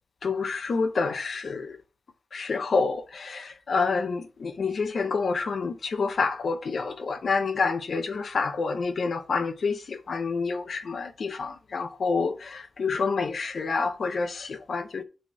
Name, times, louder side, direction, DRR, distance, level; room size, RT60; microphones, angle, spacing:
voice 1, 0.2-1.8 2.3-15.0, left 4 dB, 55° left, 0.8 m, -28 dB
5.2 x 4.2 x 5.9 m
wide cardioid pair, 160°, 0 cm